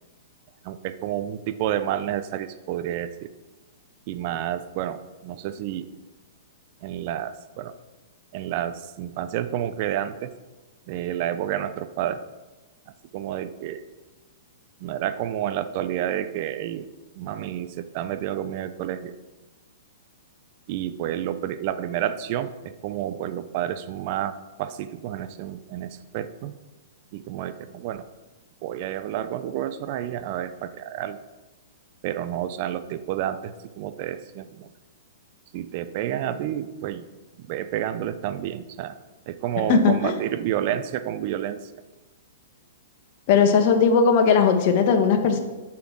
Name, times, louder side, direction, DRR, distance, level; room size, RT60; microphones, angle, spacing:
voice 1, 0.6-3.3 4.1-5.9 6.8-7.7 8.3-10.3 10.9-12.2 13.1-13.8 14.8-16.9 17.2-19.1 20.7-26.6 27.1-28.0 28.6-31.2 32.0-34.7 35.5-37.0 37.4-39.0 39.3-41.6, right 11 dB, 45° right, 12 dB, 0.7 m, -30 dB
voice 2, 39.7-40.1 43.3-45.4, left 5 dB, 50° left, 5 dB, 1.4 m, -18 dB
8.3 x 6.1 x 6.2 m, 1.2 s
hypercardioid pair, 115°, 0 cm